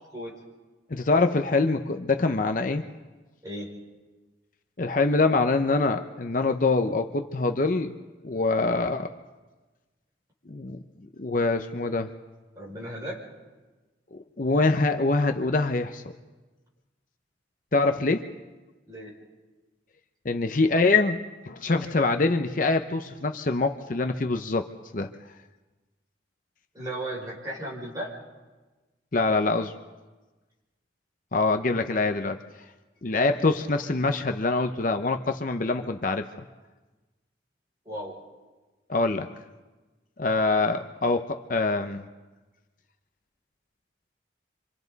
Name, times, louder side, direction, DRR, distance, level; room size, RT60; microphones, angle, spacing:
voice 1, 0.9-2.8 4.8-7.9 8.2-9.2 10.5-10.8 11.2-12.1 14.1-16.0 17.7-18.3 20.2-21.2 21.5-25.1 29.1-29.7 31.3-32.4 33.0-36.3 38.9-39.3 40.2-42.0, left 3 dB, 45° left, 6 dB, 0.7 m, -24 dB
voice 2, 12.6-13.2 18.9-19.1 26.7-28.1 37.9-38.1, right 1 dB, 20° right, -4 dB, 5.9 m, -35 dB
27.5 x 26.0 x 4.1 m, 1.2 s
head